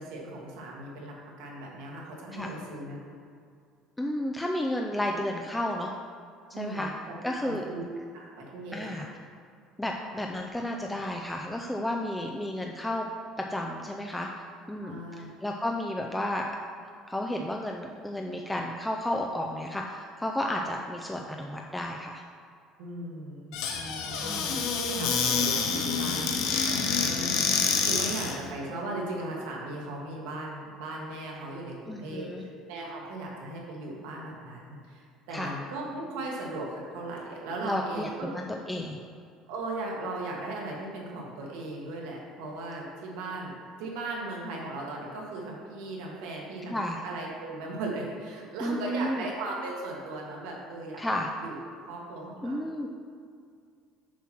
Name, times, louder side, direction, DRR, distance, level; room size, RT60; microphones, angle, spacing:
voice 1, 0.0-3.1 6.5-7.0 7.2-7.9 8.1-9.0 14.8-15.3 22.8-27.5 27.8-38.3 39.5-43.5 43.8-51.0 51.4-51.5 51.9-52.9, right 2 dB, 85° right, -2 dB, 1.8 m, -37 dB
voice 2, 4.0-5.9 6.6-6.9 7.2-7.6 8.7-9.1 9.8-13.1 13.4-14.3 14.7-16.5 17.1-22.2 24.2-24.6 31.9-32.4 35.3-35.5 37.6-39.0 46.7-47.0 48.6-49.2 51.0-51.3 52.4-52.9, left 1 dB, 5° left, 1 dB, 0.3 m, -32 dB
Squeak / Cupboard open or close, 23.5-28.4, left 6 dB, 70° left, 0.8 m, -27 dB
7.1 x 4.5 x 5.9 m, 2.3 s
cardioid pair, 175°, 0 cm